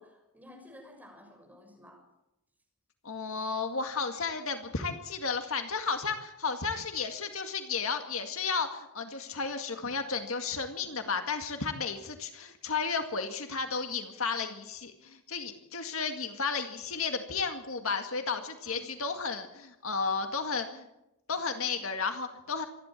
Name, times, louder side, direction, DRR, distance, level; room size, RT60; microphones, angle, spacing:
voice 1, 0.0-2.0 18.6-18.9, left 1 dB, 10° right, 2 dB, 6.6 m, -53 dB
voice 2, 3.0-20.9 21.3-22.6, left 5 dB, 70° left, 6 dB, 2.1 m, -33 dB
26.5 x 11.5 x 9.0 m, 0.88 s
head